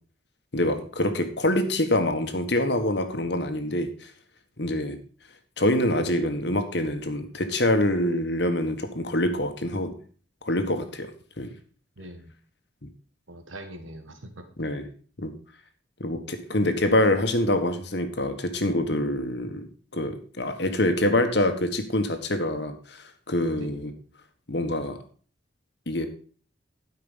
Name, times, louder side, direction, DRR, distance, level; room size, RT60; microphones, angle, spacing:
voice 1, 0.5-4.1 4.6-5.0 5.6-9.9 10.4-11.1 11.4-11.5 14.6-14.9 15.2-15.3 16.0-23.9 24.5-25.0 25.9-26.1, left 1 dB, 60° left, 7 dB, 1.6 m, -25 dB
voice 2, 12.0-12.3 13.3-14.4 23.6-23.8, right 1 dB, 90° right, 6 dB, 1.7 m, -43 dB
12.5 x 5.8 x 5.5 m, 0.42 s
head